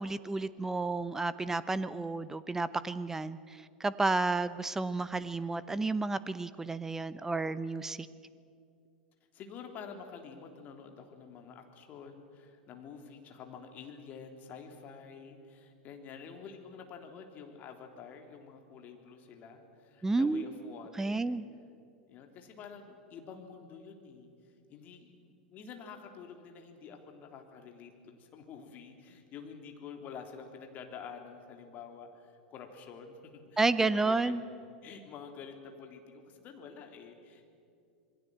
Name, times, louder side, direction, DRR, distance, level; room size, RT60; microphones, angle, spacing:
voice 1, 0.0-8.1 20.0-20.4 21.0-21.5 33.6-34.4, right 3 dB, 10° right, 16 dB, 0.7 m, -31 dB
voice 2, 9.3-21.4 22.1-24.3 24.7-34.3 34.8-37.5, left 6 dB, 35° left, 4 dB, 3.4 m, -48 dB
27.0 x 21.0 x 7.8 m, 2.4 s
figure-of-eight pair, 90°, 5 cm